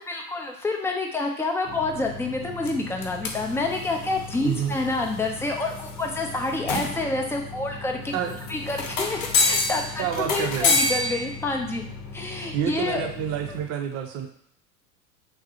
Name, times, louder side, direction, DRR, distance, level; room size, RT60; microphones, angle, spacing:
voice 1, 0.1-8.1 8.5-11.8 12.1-13.1, left 2 dB, 5° left, 1 dB, 0.5 m, -28 dB
sound 1, 1.6-13.6, left 3 dB, 45° left, 0.9 m, -30 dB
voice 2, 4.4-4.8 8.1-8.4 10.0-10.8 12.5-14.3, right 9 dB, 35° right, 4 dB, 0.6 m, -28 dB
5.8 x 2.1 x 2.8 m, 0.67 s
hypercardioid pair, 90°, 44 cm